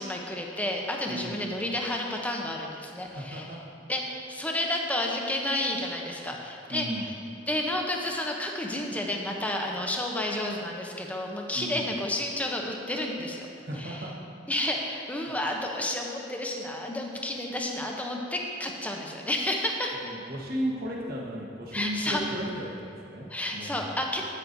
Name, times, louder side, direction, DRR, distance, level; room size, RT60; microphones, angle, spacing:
voice 1, 0.0-3.5 3.9-7.1 7.5-13.5 13.8-14.1 14.5-20.0 21.7-22.2 23.3-24.2, left 1 dB, 10° left, 1 dB, 0.7 m, -31 dB
voice 2, 1.1-1.4 3.0-3.6 6.7-7.1 11.5-11.9 13.7-14.1 20.0-24.0, equal, 50° right, -3 dB, 1.3 m, -35 dB
8.9 x 8.7 x 2.6 m, 2.6 s
head